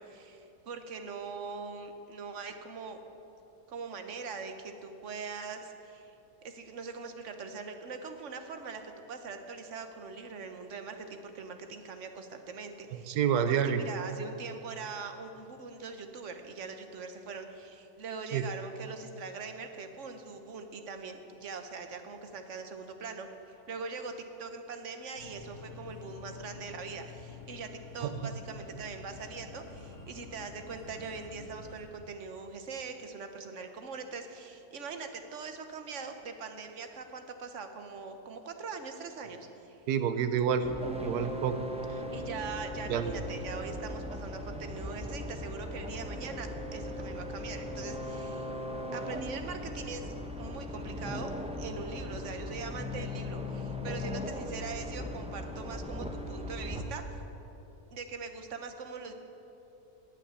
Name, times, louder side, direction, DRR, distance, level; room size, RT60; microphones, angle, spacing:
voice 1, 0.0-3.0 3.7-6.1 6.4-8.8 9.1-13.2 13.5-24.1 24.4-27.7 27.9-39.8 42.1-48.5 48.9-50.1 50.4-51.3 51.6-57.2 57.9-59.1, right 4 dB, 55° right, 7 dB, 1.3 m, -42 dB
voice 2, 13.1-13.8 18.3-18.4 39.9-40.7 41.0-41.6 42.9-43.1, right 8 dB, 90° right, 10 dB, 1.3 m, -28 dB
sound 1, 25.1-31.9, left 4 dB, 55° left, 1.9 m, -48 dB
sound 2, 40.6-56.8, left 1 dB, 5° right, 0.6 m, -38 dB
18.5 x 6.1 x 8.2 m, 2.9 s
omnidirectional pair, 1.6 m